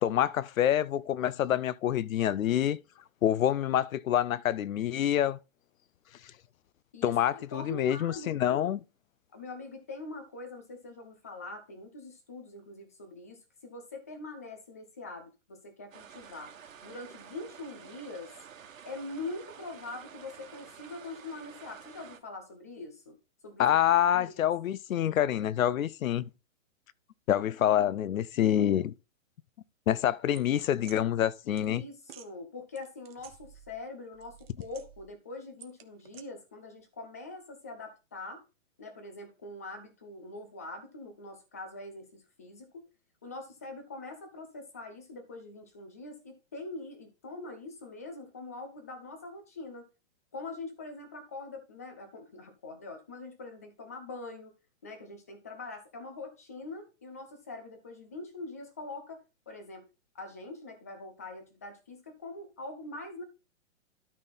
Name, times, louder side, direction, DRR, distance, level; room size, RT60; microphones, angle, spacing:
voice 1, 0.0-2.8 3.2-5.4 7.0-8.8 23.6-26.2 27.3-28.9 29.9-31.8, left 11 dB, 85° left, 0.6 m, -27 dB
voice 2, 6.9-8.7 9.3-16.5 16.8-18.3 18.8-23.2 23.4-24.5 31.4-38.4 38.8-42.9 43.2-49.9 50.3-54.5 54.8-59.9 60.1-63.2, left 2 dB, 15° left, 0.4 m, -43 dB
sound 1, 15.9-22.2, right 7 dB, 80° right, 1.7 m, -50 dB
sound 2, 30.3-31.0 31.6-31.7 32.0-32.3 32.8-33.9 34.1-35.1 35.6-36.2, right 10 dB, 45° right, 1.1 m, -52 dB
12.5 x 4.2 x 4.1 m
hypercardioid pair, 165°, 40 cm